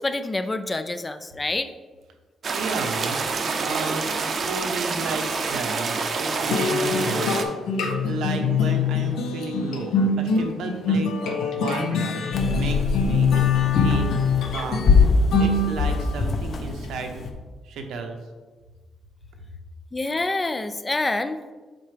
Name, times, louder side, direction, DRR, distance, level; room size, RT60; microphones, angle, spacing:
voice 1, 0.0-1.7 19.9-21.4, left 2 dB, 15° left, 10 dB, 0.3 m, -27 dB
sound 1, 2.4-7.4, right 4 dB, 40° right, 0.6 m, -27 dB
voice 2, 2.5-13.5 13.8-14.9 15.4-17.2 17.6-18.2, right 3 dB, 85° right, 4 dB, 0.9 m, -33 dB
sound 2, 6.5-16.2, left 4 dB, 85° left, 0.7 m, -24 dB
sound 3, 12.3-17.3, left 4 dB, 45° left, 0.7 m, -23 dB
7.7 x 4.5 x 3.3 m, 1.3 s
cardioid pair, 150°, 0 cm